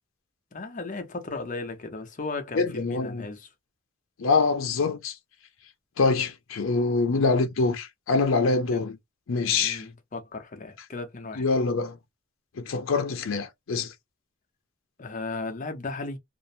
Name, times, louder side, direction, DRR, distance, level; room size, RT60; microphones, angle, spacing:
voice 1, 0.5-3.5 8.7-8.8 9.6-11.4 15.0-16.2, left 3 dB, 40° left, 0.6 m, -35 dB
voice 2, 2.6-3.3 4.2-5.1 6.0-9.0 9.3-9.8 11.4-12.0 12.6-13.9, left 4 dB, 80° left, 0.5 m, -25 dB
2.6 x 2.0 x 2.6 m
head